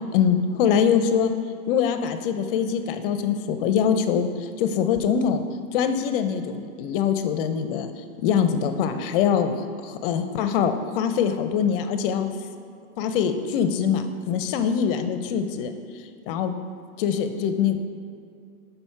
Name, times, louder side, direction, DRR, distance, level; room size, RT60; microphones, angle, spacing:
voice 1, 0.1-1.3 1.7-5.4 5.7-7.9 8.2-9.5 9.8-12.3 13.0-15.7 16.3-16.5 17.0-17.8, left 7 dB, 40° left, 9 dB, 0.6 m, -23 dB
6.2 x 5.4 x 5.6 m, 2.4 s
hypercardioid pair, 125°, 43 cm